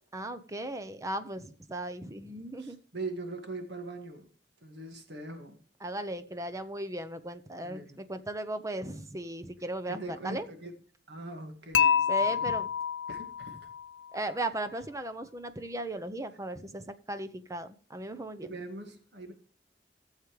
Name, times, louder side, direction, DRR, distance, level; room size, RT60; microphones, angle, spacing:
voice 1, 0.1-2.8 5.8-10.5 12.1-12.7 14.1-18.5, right 1 dB, 20° right, 10 dB, 0.7 m, -37 dB
voice 2, 2.6-4.3 4.6-5.6 7.6-8.0 9.9-10.7 11.1-12.5 13.1-13.6 18.4-19.3, right 2 dB, 70° right, 6 dB, 2.0 m, -41 dB
Dishes pots and pans / Chink clink, 11.7-13.9, left 8 dB, 90° left, 0.5 m, -27 dB
15.0 x 7.4 x 3.2 m, 0.43 s
head